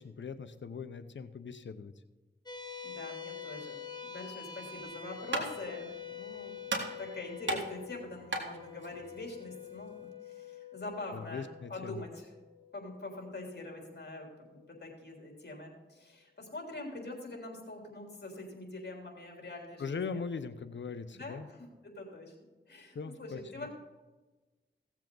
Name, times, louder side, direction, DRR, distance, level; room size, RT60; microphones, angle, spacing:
voice 1, 0.0-1.9 11.1-12.0 19.8-21.5 22.9-23.7, left 5 dB, 80° left, 12 dB, 0.8 m, -40 dB
sound 1, 2.5-15.1, left 7 dB, 20° left, 1.7 m, -47 dB
voice 2, 2.8-12.3 12.7-20.2 21.1-22.4 22.7-23.7, left 2 dB, 60° left, 0 dB, 3.5 m, -44 dB
sound 2, 4.8-10.1, right 2 dB, 80° right, 1.9 m, -39 dB
16.5 x 7.4 x 3.9 m, 1.2 s
cardioid pair, 50°, 19 cm